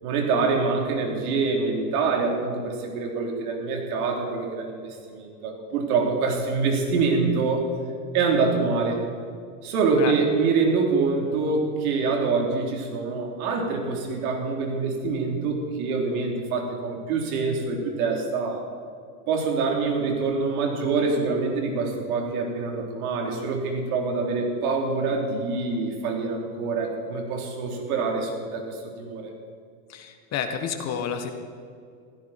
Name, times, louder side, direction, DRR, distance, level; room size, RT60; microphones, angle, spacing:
voice 1, 0.0-7.7 8.1-9.0 9.6-18.6 19.3-29.3, right 4 dB, 70° right, 1 dB, 3.7 m, -25 dB
voice 2, 29.9-31.3, left 7 dB, 35° left, 6 dB, 1.6 m, -30 dB
16.0 x 15.5 x 4.4 m, 2.3 s
supercardioid pair, 130°, 45 cm